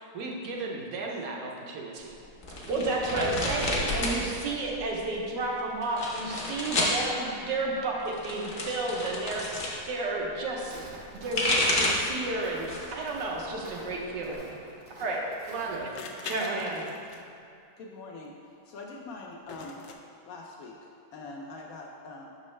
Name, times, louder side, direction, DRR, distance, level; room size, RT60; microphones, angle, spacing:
voice 1, 0.0-1.9 3.1-3.3 15.5-15.9, right 3 dB, 65° right, -1 dB, 1.1 m, -35 dB
sound 1, 2.4-4.2 4.5-5.1 5.8-7.0 8.0-9.7 11.0-12.1 12.6-13.0 13.4-14.4, left 1 dB, 45° left, 0.8 m, -30 dB
voice 2, 2.6-9.4 9.9-10.7 11.2-14.5 15.0-15.2 16.2-16.8, right 2 dB, 85° right, -2 dB, 1.5 m, -31 dB
Walk footsteps, 10.6-15.9, right 1 dB, 40° right, 0.6 m, -48 dB
sound 2, 14.8-14.9 16.0-17.5 19.5-20.0, left 4 dB, 90° left, 1.2 m, -41 dB
voice 3, 17.8-18.4 18.7-19.9 20.3-22.3, left 3 dB, 70° left, -1 dB, 0.9 m, -43 dB
6.2 x 5.3 x 3.1 m, 2.5 s
omnidirectional pair, 1.8 m